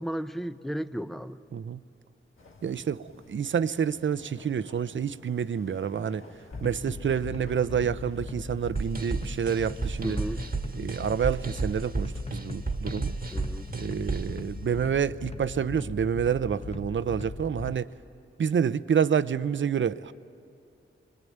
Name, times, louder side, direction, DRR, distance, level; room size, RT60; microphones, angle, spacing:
voice 1, 0.0-1.4 10.0-10.5 13.3-13.7, right 1 dB, ahead, 0.7 m, -34 dB
sound 1, 2.4-10.5, left 2 dB, 80° left, 1.8 m, -53 dB
voice 2, 2.6-6.2 6.6-10.2 10.7-13.2 13.7-17.9 18.4-20.1, right 7 dB, 65° right, 0.6 m, -28 dB
sound 2, 6.5-17.8, left 3 dB, 30° left, 0.9 m, -39 dB
sound 3, 8.8-14.4, right 4 dB, 45° right, 1.4 m, -33 dB
27.0 x 21.5 x 9.4 m
wide cardioid pair, 70°, 21 cm